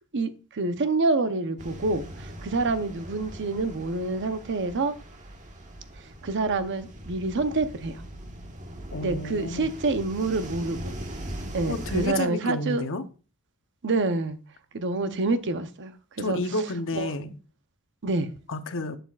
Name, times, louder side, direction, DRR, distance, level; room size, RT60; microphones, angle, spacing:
voice 1, 0.1-4.9 6.2-8.0 9.0-10.9 11.5-12.9 13.8-14.4 14.7-15.9 16.2-16.4 17.0-17.1 18.0-18.3, right 3 dB, 55° right, 0.8 m, -27 dB
sound 1, 1.6-12.1, right 1 dB, 35° right, 1.4 m, -40 dB
voice 2, 8.9-9.7 11.7-13.0 16.2-17.4 18.5-19.0, left 2 dB, 60° left, 0.8 m, -30 dB
11.5 x 6.8 x 2.4 m
head